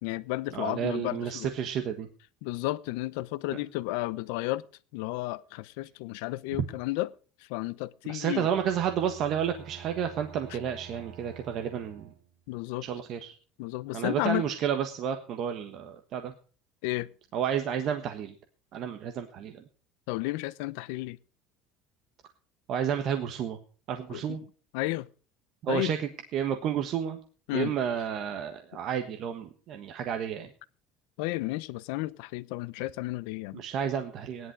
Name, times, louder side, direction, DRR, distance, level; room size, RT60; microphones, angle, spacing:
voice 1, 0.0-1.5 2.4-4.6 4.9-7.1 7.5-8.5 12.5-12.9 13.6-14.5 16.8-17.1 20.1-21.2 24.1-24.4 24.7-25.1 25.7-25.9 27.5-27.7 31.2-33.6, left 19 dB, 80° left, 0.7 m, -32 dB
voice 2, 0.5-2.1 6.5-6.6 8.0-12.1 12.8-13.3 13.9-16.3 17.3-18.3 18.7-19.6 22.7-23.6 23.9-24.4 25.6-27.2 27.5-30.5 33.5-34.5, right 8 dB, 40° right, 1.4 m, -31 dB
Bowed string instrument, 8.5-12.4, right 7 dB, 75° right, 4.2 m, -48 dB
16.5 x 11.0 x 4.8 m
cardioid pair, 170°, 0 cm